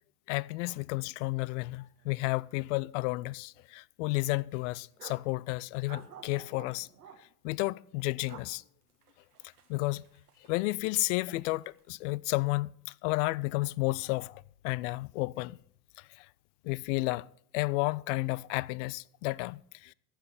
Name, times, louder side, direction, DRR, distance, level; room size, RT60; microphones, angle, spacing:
voice 1, 0.3-6.9 7.4-8.6 9.7-10.0 10.5-12.7 13.0-15.6 16.0-16.3 16.6-17.3 17.5-19.9, left 22 dB, 55° left, 0.5 m, -32 dB
sound 1, 1.6-1.7 2.0-2.1 2.6-3.2 3.6-3.7 4.2-5.3 5.9-7.2 8.1-8.5 8.9-10.9 11.2-11.9, right 7 dB, 90° right, 1.5 m, -52 dB
14.5 x 5.8 x 7.0 m
hypercardioid pair, 85°, 45 cm